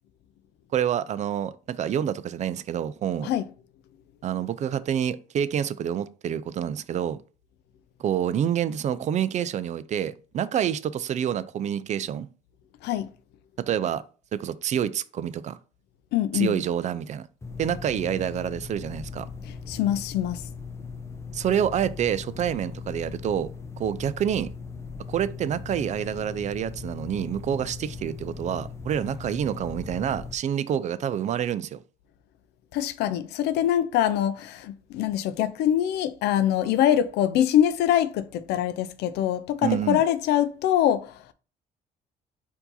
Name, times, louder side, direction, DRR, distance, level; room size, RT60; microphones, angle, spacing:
voice 1, 0.7-3.3 4.2-7.2 8.0-12.3 13.6-14.0 14.3-15.6 16.3-17.3 17.6-19.3 21.3-23.5 23.8-24.5 25.1-31.8 39.6-40.0, right 9 dB, 45° right, 0.4 m, -27 dB
voice 2, 16.1-16.6 19.4-20.5 32.7-41.2, left 11 dB, 80° left, 0.5 m, -24 dB
sound 1, 17.4-30.4, left 4 dB, 15° left, 0.6 m, -39 dB
4.5 x 2.8 x 3.9 m
cardioid pair, 110°, 17 cm